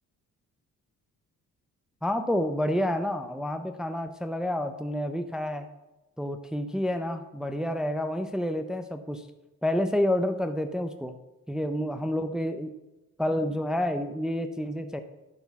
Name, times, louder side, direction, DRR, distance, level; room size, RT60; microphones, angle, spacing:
voice 1, 2.0-5.7 6.2-9.3 9.6-11.2 11.5-12.7 13.2-15.0, left 1 dB, ahead, 7 dB, 0.6 m, -29 dB
11.5 x 5.5 x 5.9 m, 1.1 s
cardioid pair, 90°, 34 cm